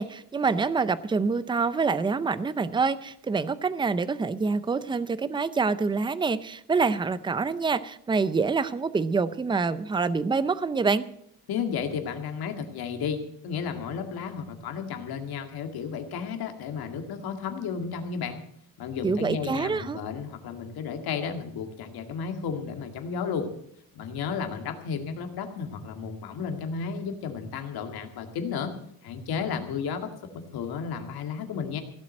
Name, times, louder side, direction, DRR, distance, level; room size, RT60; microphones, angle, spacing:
voice 1, 0.0-11.1 19.0-20.0, right 4 dB, 15° right, 15 dB, 0.5 m, -26 dB
voice 2, 11.5-18.4 18.8-23.5 23.9-28.7 29.0-31.8, left 6 dB, 75° left, 5 dB, 2.1 m, -33 dB
16.5 x 7.6 x 7.6 m, 0.71 s
cardioid pair, 145°, 37 cm